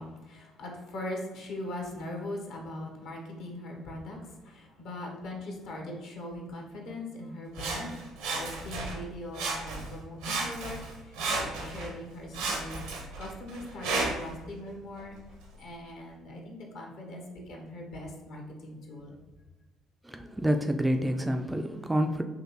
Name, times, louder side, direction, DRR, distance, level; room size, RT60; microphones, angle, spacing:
voice 1, 0.0-7.9 8.3-15.2 15.6-19.2, left 1 dB, 65° left, 0 dB, 0.9 m, -41 dB
Sawing, 7.5-9.0 9.3-9.9 10.2-11.9 12.3-14.3 15.0-15.1, right 3 dB, 75° right, 0.7 m, -33 dB
voice 2, 20.1-22.2, equal, 10° right, 6 dB, 0.3 m, -28 dB
3.9 x 3.0 x 2.9 m, 1.1 s
hypercardioid pair, 50°, 0 cm